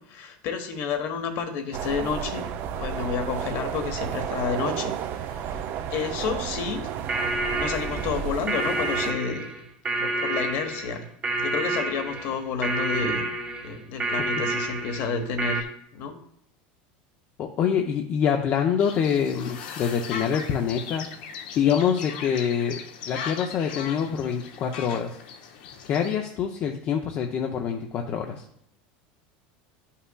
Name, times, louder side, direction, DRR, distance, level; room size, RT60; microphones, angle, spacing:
voice 1, 0.1-2.4 2.8-5.6 5.9-6.9 7.5-9.5 10.0-11.0 11.4-13.3 13.6-15.7 15.9-16.2, left 5 dB, 55° left, 6 dB, 1.1 m, -30 dB
sound 1, 1.7-9.1, right 8 dB, 45° right, 0.5 m, -32 dB
sound 2, 7.1-15.6, right 2 dB, 25° right, 1.1 m, -29 dB
voice 2, 17.4-21.1 21.5-22.8 23.1-25.2 25.8-28.4, left 8 dB, 40° left, 3 dB, 0.6 m, -25 dB
sound 3, 18.8-26.1, left 6 dB, 80° left, 0.8 m, -38 dB
11.0 x 5.6 x 2.3 m, 0.73 s
supercardioid pair, 130°, 5 cm